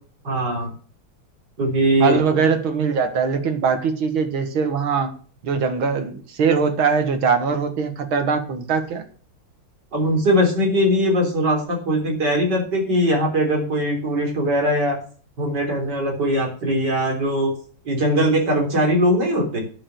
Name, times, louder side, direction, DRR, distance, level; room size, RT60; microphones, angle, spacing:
voice 1, 0.2-0.7 1.6-2.2 9.9-15.0 15.4-17.5 17.8-19.6, equal, 55° right, 1 dB, 4.1 m, -20 dB
voice 2, 2.0-5.1 5.4-9.0, right 5 dB, 80° right, 7 dB, 2.4 m, -21 dB
9.9 x 6.9 x 6.9 m, 0.43 s
omnidirectional pair, 2.3 m